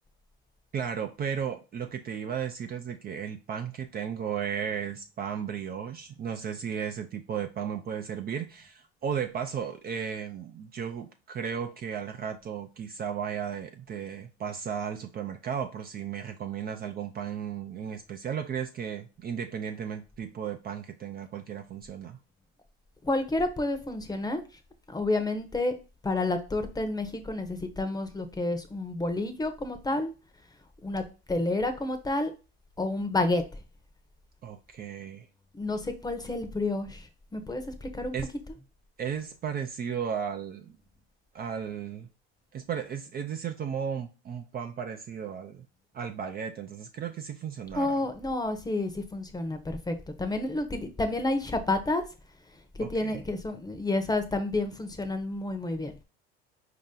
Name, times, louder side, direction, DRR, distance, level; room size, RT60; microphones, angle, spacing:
voice 1, 0.7-22.2 34.4-35.3 38.1-38.3 39.0-40.7 41.3-42.1 42.5-45.7 45.9-48.0 52.8-53.2, right 7 dB, 30° right, 0.5 m, -35 dB
voice 2, 23.0-24.4 24.9-25.7 26.0-30.1 30.8-32.3 32.8-33.4 35.5-38.1 47.7-52.0 52.7-55.9, left 2 dB, 15° left, 0.9 m, -30 dB
4.6 x 2.9 x 3.8 m
hypercardioid pair, 90°, 30 cm